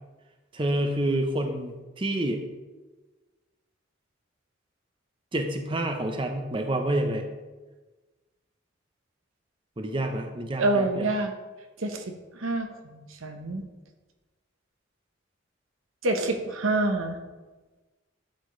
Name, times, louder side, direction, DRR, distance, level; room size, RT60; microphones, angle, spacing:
voice 1, 0.5-2.4 5.3-7.2 9.8-11.1, right 1 dB, 25° right, 5 dB, 0.6 m, -28 dB
voice 2, 10.6-11.3 11.8-12.0 12.3-13.6 16.0-17.2, right 2 dB, 90° right, 6 dB, 1.0 m, -27 dB
11.5 x 6.9 x 3.2 m, 1.2 s
head